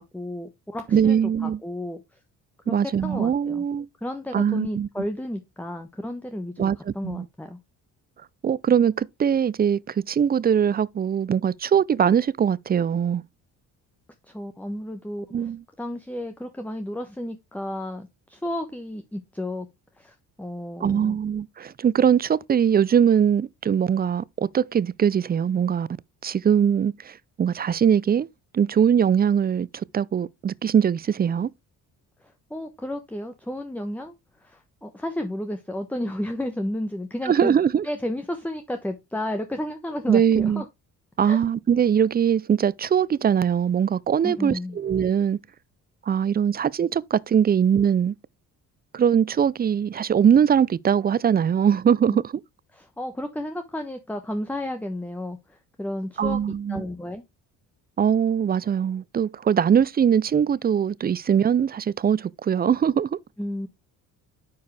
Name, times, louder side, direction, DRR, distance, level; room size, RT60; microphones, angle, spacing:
voice 1, 0.0-1.2 1.4-2.0 2.6-2.7 3.0-3.6 4.0-7.6 14.3-15.5 15.8-19.7 20.0-21.2 32.2-34.1 34.4-37.6 37.8-40.6 41.2-41.4 44.2-44.8 52.1-52.2 52.7-56.4 56.7-57.2 63.4-63.7, left 1 dB, 5° left, 1.1 m, -32 dB
voice 2, 0.9-1.6 2.7-3.9 4.3-4.9 6.6-7.3 8.4-13.2 15.3-15.6 20.8-25.9 26.2-28.3 28.5-31.5 37.2-37.9 40.1-40.6 41.2-45.4 46.1-48.1 48.9-52.2 56.2-56.8 58.0-63.2, right 8 dB, 25° right, 0.4 m, -21 dB
9.5 x 4.7 x 3.3 m
supercardioid pair, 60°, 41 cm